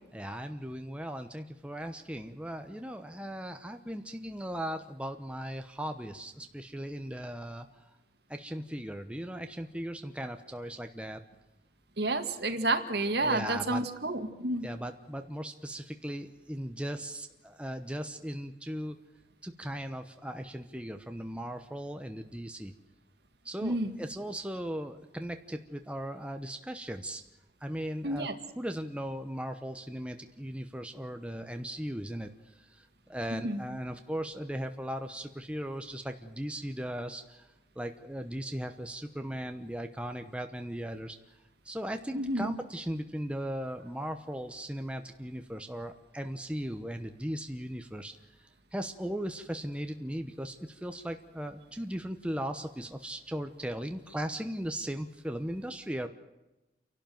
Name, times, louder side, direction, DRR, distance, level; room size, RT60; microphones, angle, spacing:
voice 1, 0.1-7.8 8.3-11.2 13.2-13.8 14.6-19.0 19.4-22.7 23.4-27.2 27.6-28.3 28.5-37.5 37.8-41.2 41.6-48.1 48.7-56.1, equal, 5° right, 6 dB, 0.9 m, -38 dB
voice 2, 12.0-14.7 23.6-23.9 28.0-28.4 33.3-33.6 42.1-42.5, right 2 dB, 65° right, 7 dB, 2.0 m, -30 dB
29.0 x 12.0 x 9.2 m, 1.0 s
head